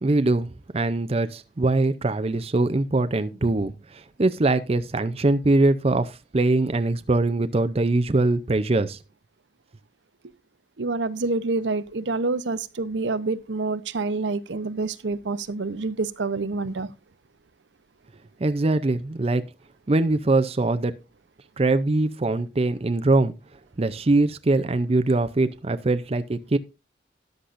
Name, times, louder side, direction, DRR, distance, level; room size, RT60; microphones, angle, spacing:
voice 1, 0.0-9.0 18.4-19.4 19.9-20.9 21.6-23.3 23.8-26.6, right 2 dB, 35° right, 0.5 m, -22 dB
voice 2, 10.8-16.9, right 3 dB, 80° right, 0.7 m, -27 dB
13.5 x 10.0 x 2.5 m
head